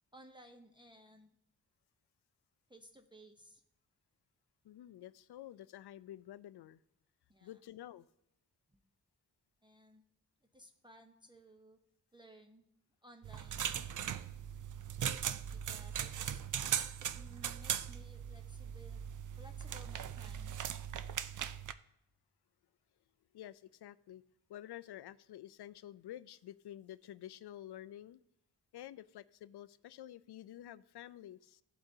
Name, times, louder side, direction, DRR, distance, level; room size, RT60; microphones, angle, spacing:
voice 1, 0.1-1.4 2.7-3.6 7.3-7.6 9.6-10.0 10.5-11.8 12.1-12.7 13.0-13.7 15.5-16.4 16.9-19.0 19.4-20.6, right 1 dB, 10° right, 0.7 m, -58 dB
voice 2, 4.6-6.8 7.4-8.1 23.3-24.2 24.5-28.2 28.7-31.6, left 12 dB, 80° left, 0.5 m, -50 dB
sound 1, 13.2-21.7, right 9 dB, 55° right, 0.5 m, -39 dB
16.0 x 7.8 x 2.7 m
wide cardioid pair, 120°, 39 cm